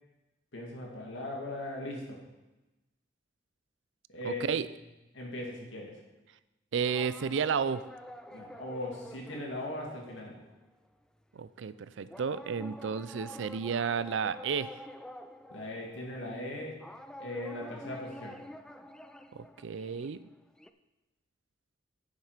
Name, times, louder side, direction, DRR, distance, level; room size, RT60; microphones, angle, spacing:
voice 1, 0.5-2.2 4.1-4.4 5.1-6.0 8.3-10.4 15.5-16.8 17.2-18.4, left 1 dB, 90° left, -2 dB, 2.3 m, -39 dB
voice 2, 4.2-4.7 6.7-7.8 11.3-14.7 19.3-20.2, right 6 dB, 70° right, 15 dB, 0.4 m, -32 dB
sound 1, 6.9-10.7 11.3-11.6 12.1-20.7, equal, 5° left, 0.3 m, -48 dB
9.4 x 7.3 x 5.0 m, 1.0 s
head